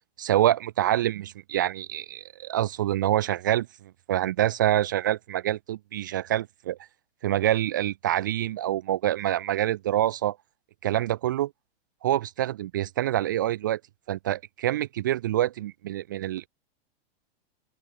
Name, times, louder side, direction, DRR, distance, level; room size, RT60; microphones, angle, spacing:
voice 1, 0.2-3.7 4.1-6.8 7.2-10.4 10.8-11.5 12.0-13.8 14.1-16.5, right 13 dB, 20° right, 0.3 m, -26 dB
open air
supercardioid pair, 180°, 31 cm